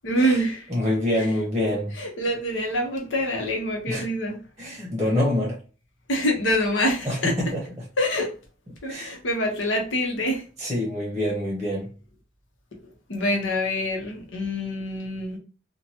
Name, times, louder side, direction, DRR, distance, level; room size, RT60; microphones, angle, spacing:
voice 1, 0.0-0.7 1.1-1.3 2.0-4.4 6.1-7.4 8.0-8.3 8.8-10.4 13.1-15.4, equal, 75° left, 0.9 m, -25 dB
voice 2, 0.7-1.9 3.9-4.0 4.6-5.6 7.0-7.6 8.9-9.2 10.6-11.9, left 1 dB, 15° right, 0.8 m, -25 dB
2.8 x 2.2 x 2.8 m
head